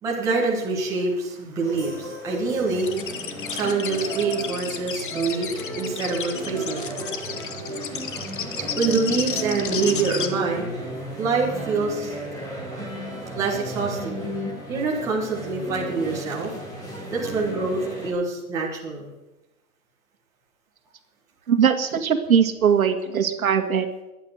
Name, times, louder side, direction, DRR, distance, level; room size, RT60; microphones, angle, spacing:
voice 1, 0.0-2.9 3.5-7.0 8.8-10.7 11.2-12.2 13.3-14.2 14.7-16.5 17.1-19.1, right 4 dB, 5° right, -3 dB, 1.5 m, -25 dB
sound 1, 1.6-18.1, right 1 dB, 15° left, 6.1 m, -34 dB
sound 2, 2.8-10.3, left 8 dB, 35° left, 1.2 m, -32 dB
voice 2, 21.5-23.9, right 7 dB, 70° right, 7 dB, 1.9 m, -20 dB
21.5 x 8.8 x 6.5 m, 1.0 s
hypercardioid pair, 170°, 44 cm